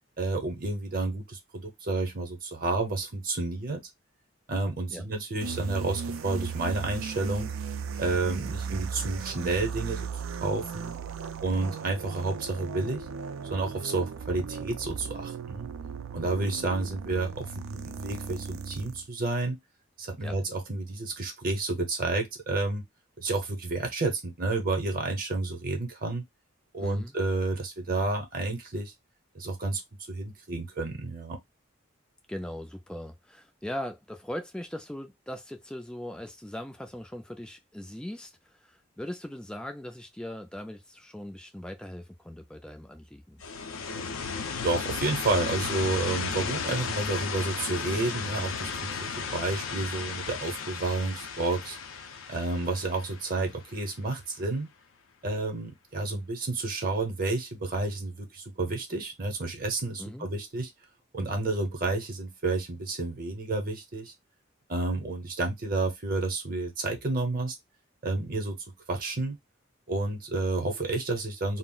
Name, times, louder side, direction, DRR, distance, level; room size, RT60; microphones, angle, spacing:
voice 1, 0.2-3.8 4.5-7.5 8.0-11.0 11.4-13.1 13.5-15.7 16.1-19.6 20.0-22.8 23.2-26.2 26.7-28.9 29.3-29.8 30.1-31.4 44.6-51.8 52.3-54.7 55.2-60.7 61.1-64.1 64.7-67.5 68.0-68.6 68.9-69.4 69.9-71.6, right 3 dB, 45° right, 0.7 m, -30 dB
sound 1, 5.4-19.1, right 6 dB, 80° right, 0.4 m, -37 dB
voice 2, 26.8-27.1 32.3-43.4 60.0-60.3, left 1 dB, 5° left, 0.3 m, -40 dB
sound 2, 43.4-54.1, left 5 dB, 75° left, 0.5 m, -34 dB
2.3 x 2.0 x 3.7 m
head